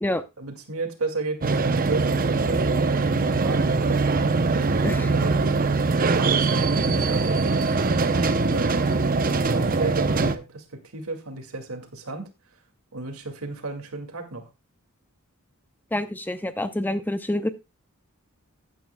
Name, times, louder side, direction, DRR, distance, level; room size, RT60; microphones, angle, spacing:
voice 1, 0.4-4.0 4.5-5.6 6.2-8.9 9.4-12.3 12.9-14.5, right 3 dB, 85° right, 2.2 m, -34 dB
sound 1, 1.4-10.3, right 3 dB, 40° right, 0.7 m, -22 dB
voice 2, 4.8-5.1 15.9-17.5, left 1 dB, 10° left, 0.6 m, -27 dB
15.0 x 9.2 x 2.3 m
head